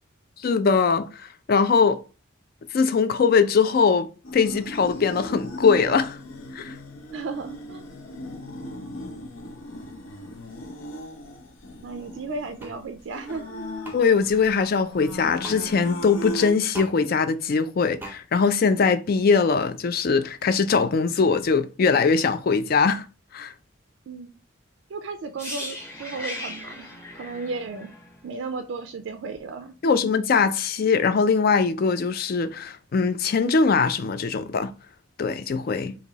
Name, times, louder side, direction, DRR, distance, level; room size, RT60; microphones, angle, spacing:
voice 1, 0.4-2.0 2.7-4.1 4.3-6.2 6.5-6.8 13.9-23.0 23.3-23.5 29.8-34.7 35.2-36.0, left 5 dB, 50° left, 0.3 m, -21 dB
sound 1, 4.2-16.5, left 1 dB, 75° left, 0.7 m, -38 dB
voice 2, 7.1-7.8 11.8-13.5 24.1-24.3 24.9-26.8 27.1-27.9 28.2-29.7, right 4 dB, 65° right, 0.3 m, -34 dB
sound 2, 12.6-12.8 13.8-14.0 15.4-15.6 16.7-16.9 18.0-18.2, right 1 dB, 10° right, 0.5 m, -37 dB
sound 3, 25.4-29.2 29.5-29.7, left 1 dB, 10° left, 0.9 m, -38 dB
2.9 x 2.6 x 3.9 m
head